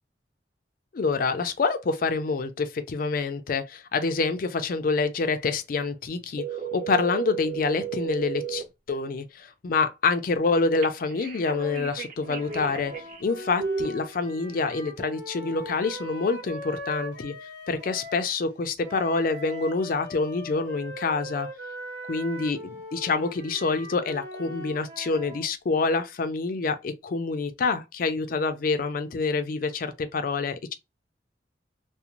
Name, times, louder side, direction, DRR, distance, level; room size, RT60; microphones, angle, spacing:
voice 1, 0.9-12.9 13.2-17.3 17.7-21.5 22.1-30.7, left 4 dB, 50° left, 0.4 m, -27 dB
sound 1, 6.4-8.6 10.8-13.2 13.6-13.9, right 6 dB, 55° right, 0.6 m, -33 dB
sound 2, 12.2-18.3 18.8-25.5, equal, 75° right, 1.2 m, -40 dB
2.5 x 2.0 x 2.9 m
head